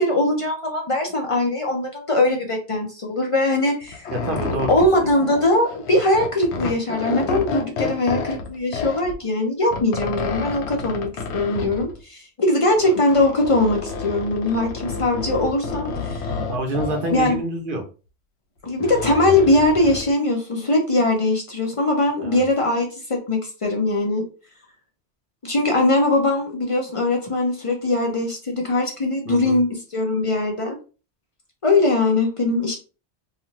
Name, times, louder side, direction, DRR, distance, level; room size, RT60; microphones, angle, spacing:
voice 1, 0.0-4.0 4.5-16.3 17.1-17.4 18.6-24.2 25.4-30.8 31.6-32.8, left 2 dB, 40° left, 1 dB, 0.5 m, -21 dB
sound 1, 3.8-9.2 9.6-12.0 12.7-17.4 18.6-20.1, left 4 dB, 80° left, 0.9 m, -30 dB
voice 2, 4.1-4.9 16.5-17.8 22.2-22.4 29.3-29.6, right 1 dB, 55° right, 3 dB, 0.7 m, -27 dB
2.6 x 2.4 x 2.9 m, 0.34 s
omnidirectional pair, 1.2 m